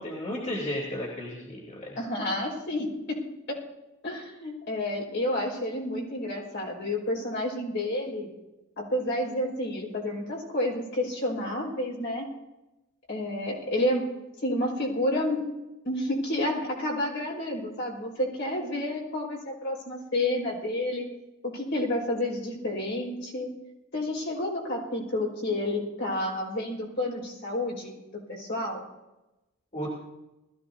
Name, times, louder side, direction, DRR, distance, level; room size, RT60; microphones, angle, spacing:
voice 1, 0.0-2.0 29.7-29.9, left 1 dB, 35° left, -4 dB, 3.2 m, -33 dB
voice 2, 1.9-3.6 4.0-8.3 8.8-12.3 13.1-14.1 14.4-15.4 15.8-21.1 21.4-23.5 23.9-27.9 28.3-28.8, left 1 dB, 55° left, -1 dB, 5.1 m, -30 dB
21.0 x 15.0 x 2.8 m, 1.0 s
head